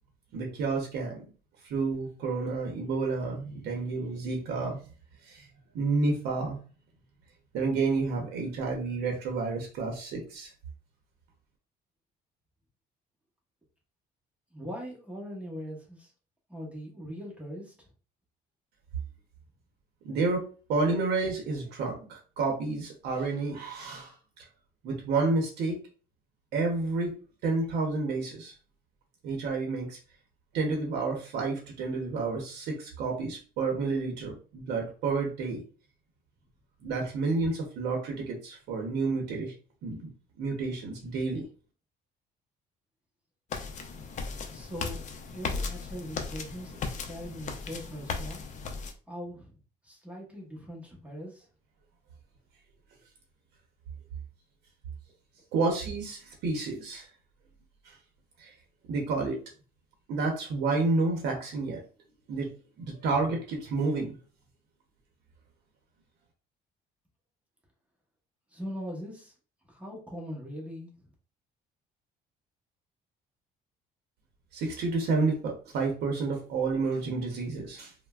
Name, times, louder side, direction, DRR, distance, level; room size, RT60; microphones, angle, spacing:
voice 1, 0.3-1.2 1.6-4.8 5.2-5.5 5.7-6.6 7.5-10.5 20.0-24.4 24.8-25.8 26.5-27.1 27.4-28.5 29.2-30.0 30.5-35.6 36.8-39.5 39.8-40.1 40.4-41.5 55.5-57.1 57.8-58.0 58.4-58.5 58.9-59.4 60.1-61.8 62.3-64.2 74.5-77.9, right 3 dB, 80° right, 1 dB, 0.7 m, -30 dB
voice 2, 14.5-16.1 16.5-17.9 44.5-45.0 45.3-48.4 49.1-49.6 49.8-51.5 68.5-69.3 69.7-71.1, equal, 10° right, -3 dB, 0.9 m, -41 dB
sound 1, 43.5-48.9, left 4 dB, 45° left, 0.5 m, -36 dB
3.2 x 2.1 x 2.3 m, 0.37 s
cardioid pair, 110°, 17 cm